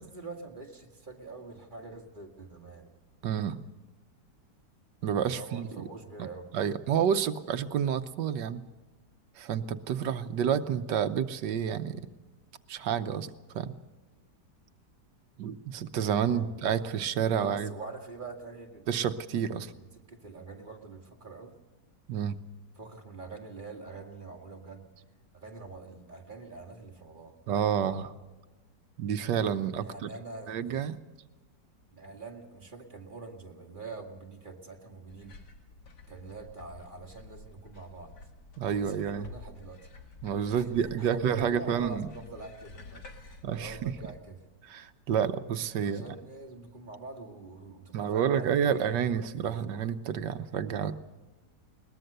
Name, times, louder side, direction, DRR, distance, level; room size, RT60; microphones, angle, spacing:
voice 1, 0.0-2.9 5.2-6.5 16.2-16.8 17.4-18.9 19.8-21.6 22.8-24.8 25.3-27.4 29.8-30.8 31.9-35.3 36.1-38.1 38.7-39.8 40.5-44.4 45.8-49.6 50.6-50.9, right 3 dB, 30° right, 3 dB, 2.1 m, -45 dB
voice 2, 3.2-3.6 5.0-5.7 6.2-6.3 6.5-8.6 9.4-12.0 12.7-13.7 15.4-17.7 18.9-19.7 22.1-22.4 27.5-28.1 29.0-30.1 30.5-31.0 38.6-39.3 40.2-42.1 43.4-43.9 44.6-46.0 47.9-50.9, right 8 dB, 85° right, 11 dB, 1.5 m, -29 dB
sound 1, 35.1-44.2, left 3 dB, 75° left, 2.2 m, -50 dB
21.5 x 20.5 x 6.7 m, 1.2 s
omnidirectional pair, 1.8 m